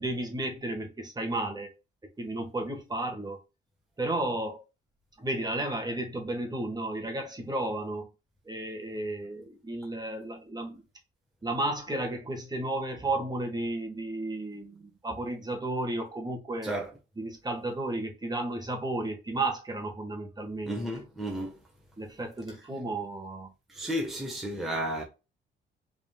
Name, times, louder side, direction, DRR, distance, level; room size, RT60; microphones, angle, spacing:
voice 1, 0.0-1.7 2.2-3.4 4.0-4.6 5.2-8.1 8.4-10.8 11.4-16.7 17.2-20.7 22.0-23.5, right 2 dB, 20° right, 1.5 m, -33 dB
voice 2, 20.7-21.6 23.7-25.0, equal, ahead, 1.2 m, -32 dB
4.9 x 3.7 x 2.3 m
cardioid pair, 90°, 20 cm